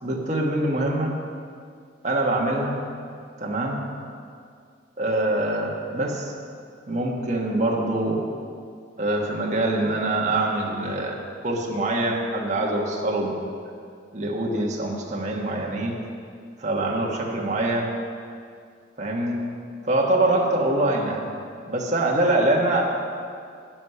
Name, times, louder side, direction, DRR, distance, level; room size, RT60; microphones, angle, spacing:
voice 1, 0.0-1.2 2.0-2.8 3.4-3.8 5.0-6.3 6.9-8.2 9.0-11.2 11.4-13.3 14.1-16.0 16.6-17.9 19.0-19.4 19.8-21.3 21.7-22.8, right 2 dB, 40° right, -2 dB, 1.4 m, -24 dB
10.5 x 7.9 x 5.7 m, 2.3 s
head